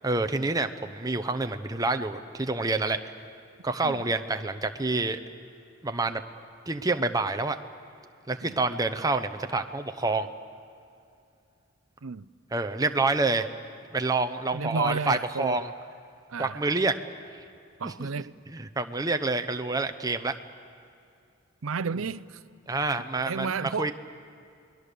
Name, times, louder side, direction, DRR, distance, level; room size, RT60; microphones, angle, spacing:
voice 1, 0.0-3.1 3.6-5.2 5.8-6.2 6.7-7.6 8.3-10.3 12.5-13.5 13.9-15.7 16.4-17.0 17.8-18.1 18.5-20.4 22.7-23.9, right 3 dB, 15° right, 0.8 m, -27 dB
voice 2, 14.5-15.7 16.3-16.6 17.8-18.3 21.6-22.4 22.9-23.9, right 5 dB, 80° right, 0.6 m, -32 dB
29.5 x 21.0 x 6.8 m
head